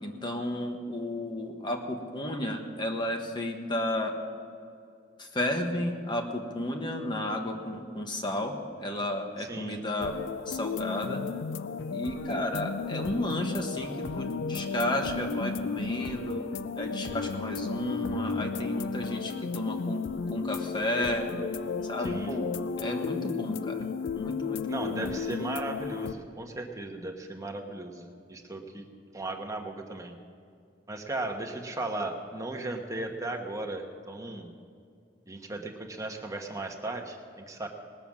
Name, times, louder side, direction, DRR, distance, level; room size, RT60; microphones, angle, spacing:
voice 1, 0.0-4.1 5.2-10.2 10.5-11.2 11.9-16.5 16.8-20.0 20.3-21.3 21.8-23.8 24.1-25.2, left 1 dB, 25° left, 3 dB, 1.3 m, -32 dB
voice 2, 9.4-9.8 22.0-22.3 24.7-28.9 29.1-30.1 30.9-34.5 35.3-37.7, right 2 dB, 20° right, 2 dB, 1.2 m, -36 dB
sound 1, 10.0-26.1, left 5 dB, 90° left, 0.5 m, -34 dB
19.5 x 7.0 x 7.3 m, 2.4 s
head